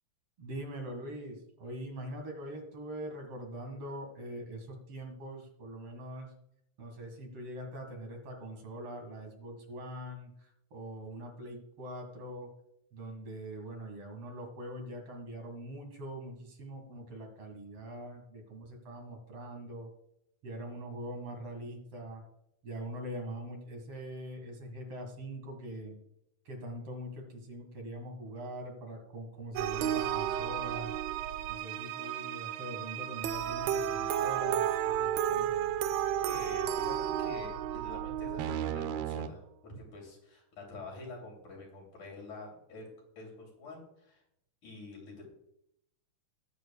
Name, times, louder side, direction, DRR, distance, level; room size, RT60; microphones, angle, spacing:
voice 1, 0.4-6.3 6.8-12.5 12.9-19.9 20.4-22.2 22.6-26.0 26.4-30.9 31.5-35.7, right 1 dB, 55° right, 3 dB, 2.9 m, -43 dB
sound 1, 29.5-39.3, right 10 dB, 75° right, 1.6 m, -32 dB
voice 2, 36.3-42.9 43.2-44.2 44.6-45.2, left 2 dB, 85° left, -1 dB, 4.4 m, -46 dB
20.0 x 7.6 x 2.3 m, 0.77 s
omnidirectional pair, 3.4 m